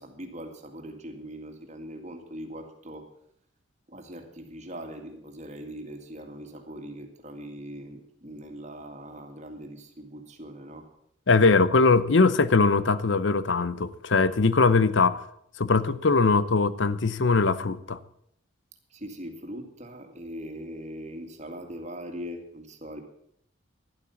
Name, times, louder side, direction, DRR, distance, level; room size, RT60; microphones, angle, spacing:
voice 1, 0.0-3.1 3.9-10.9 18.9-23.0, equal, 35° right, 2.1 m, -41 dB
voice 2, 11.3-15.2 15.6-18.0, left 4 dB, 65° left, 0.7 m, -21 dB
12.0 x 11.5 x 7.1 m
head